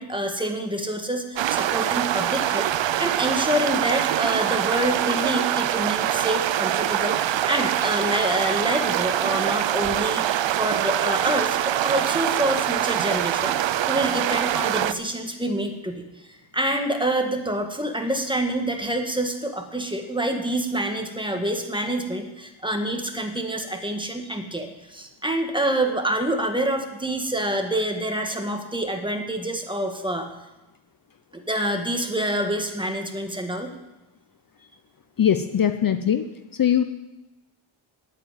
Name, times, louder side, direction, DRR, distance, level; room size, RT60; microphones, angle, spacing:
voice 1, 0.0-30.3 31.3-33.7, right 1 dB, 10° right, 4 dB, 1.7 m, -27 dB
sound 1, 1.3-14.9, right 12 dB, 65° right, 0.6 m, -24 dB
voice 2, 35.2-36.3 36.5-36.8, left 9 dB, 45° left, 9 dB, 0.7 m, -21 dB
10.0 x 8.9 x 9.0 m, 1.0 s
wide cardioid pair, 105°, 48 cm